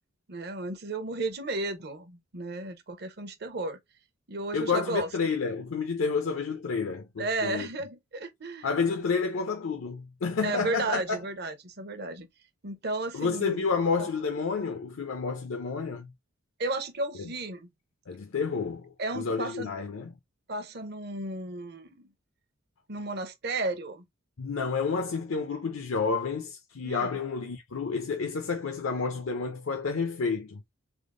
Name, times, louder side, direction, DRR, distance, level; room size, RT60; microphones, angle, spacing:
voice 1, 0.3-3.8 4.3-5.1 7.2-8.7 10.4-12.3 12.6-13.7 16.6-17.7 19.0-19.7 20.5-22.1 22.9-24.1 26.8-27.1, right 2 dB, 50° right, 0.7 m, -33 dB
voice 2, 4.5-7.7 8.6-11.2 13.1-16.1 17.2-17.3 18.1-20.1 24.4-30.6, left 5 dB, 70° left, 0.5 m, -30 dB
3.5 x 2.1 x 3.6 m
head